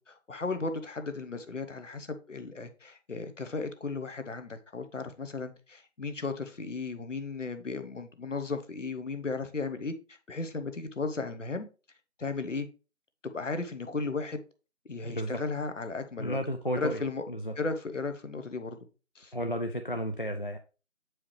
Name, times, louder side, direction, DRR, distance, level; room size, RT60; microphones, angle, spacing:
voice 1, 0.0-11.7 12.2-12.7 13.2-14.4 14.8-16.4 16.8-17.2 17.6-18.8 19.1-19.3, left 3 dB, 70° left, 8 dB, 1.2 m, -35 dB
voice 2, 15.0-15.4 16.2-17.0 17.3-17.5 19.3-20.6, equal, 45° left, 5 dB, 0.5 m, -32 dB
7.6 x 4.8 x 3.2 m, 0.32 s
figure-of-eight pair, 180°, 39 cm